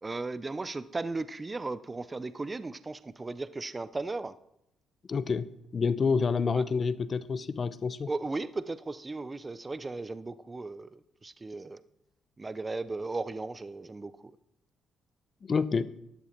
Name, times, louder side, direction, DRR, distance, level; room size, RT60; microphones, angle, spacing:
voice 1, 0.0-4.3 6.5-6.6 8.1-11.8 12.4-14.3, right 3 dB, 25° right, 14 dB, 0.5 m, -36 dB
voice 2, 5.1-8.1 15.5-15.9, left 5 dB, 40° left, 15 dB, 0.7 m, -28 dB
12.5 x 11.0 x 4.4 m, 0.79 s
cardioid pair, 90°, 0 cm